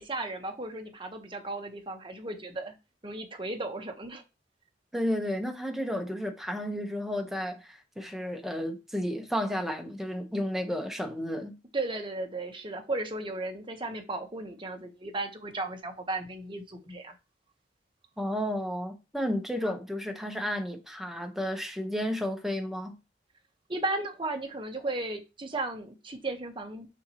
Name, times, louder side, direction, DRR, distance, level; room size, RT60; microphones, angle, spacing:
voice 1, 0.0-2.7 3.0-4.2 11.7-17.1 23.7-26.9, right 2 dB, 30° right, 1.4 m, -35 dB
voice 2, 4.9-11.5 18.2-22.9, equal, ahead, 1.3 m, -32 dB
7.0 x 5.6 x 3.2 m
head